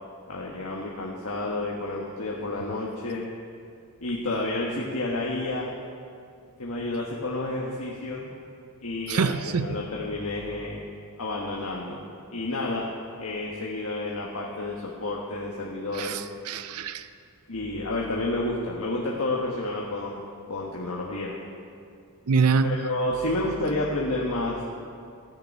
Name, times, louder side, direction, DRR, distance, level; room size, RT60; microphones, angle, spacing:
voice 1, 0.3-3.3 4.0-5.7 6.6-8.3 8.8-10.8 11.2-12.0 12.3-12.9 13.2-16.2 17.5-20.2 20.5-21.4 22.6-24.7, left 2 dB, 75° left, -3 dB, 1.4 m, -30 dB
voice 2, 9.1-9.7 15.9-17.1 22.3-22.8, right 5 dB, 80° right, 12 dB, 0.5 m, -25 dB
14.5 x 6.8 x 8.8 m, 2.3 s
head